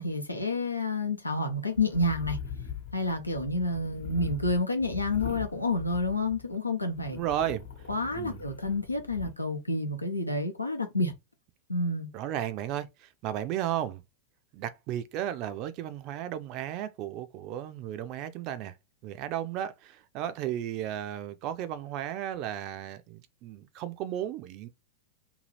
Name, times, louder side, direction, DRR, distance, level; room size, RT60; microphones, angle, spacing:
voice 1, 0.0-2.4 2.9-7.2 7.9-11.1 11.7-12.1, left 2 dB, 85° left, 0.6 m, -29 dB
sound 1, 1.8-6.6 6.9-9.3, left 7 dB, 60° left, 1.0 m, -41 dB
voice 2, 7.1-7.7 8.1-8.4 12.1-14.0 14.5-18.7 19.0-24.7, right 11 dB, 40° right, 0.4 m, -34 dB
2.7 x 2.4 x 3.2 m
figure-of-eight pair, 90°, 0 cm